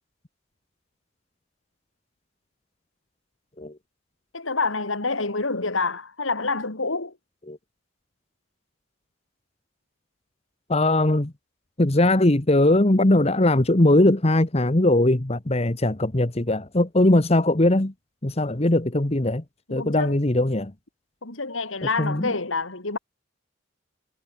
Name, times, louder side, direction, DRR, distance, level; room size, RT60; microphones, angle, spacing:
voice 1, 4.3-7.2 19.7-20.2 21.2-23.0, left 3 dB, 90° left, 3.2 m, -27 dB
voice 2, 10.7-11.3 11.8-17.9 18.2-19.4 19.7-20.7 22.0-22.3, left 1 dB, 30° left, 1.3 m, -20 dB
head